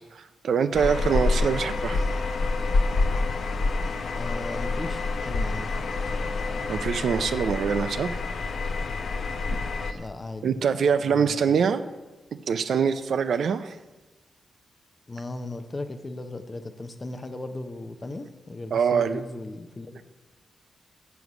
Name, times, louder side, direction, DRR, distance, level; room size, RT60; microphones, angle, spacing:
voice 1, 0.1-2.1 6.7-8.2 10.4-11.8 12.5-13.8 18.7-19.2, right 6 dB, 70° right, 11 dB, 0.5 m, -24 dB
sound 1, 0.7-9.9, left 3 dB, 60° left, 0.6 m, -27 dB
voice 2, 4.1-5.8 6.1-6.6 9.9-10.6 11.0-11.6 15.1-20.0, left 2 dB, 25° left, 7 dB, 0.6 m, -37 dB
7.9 x 7.0 x 6.0 m, 1.2 s
wide cardioid pair, 145°, 0 cm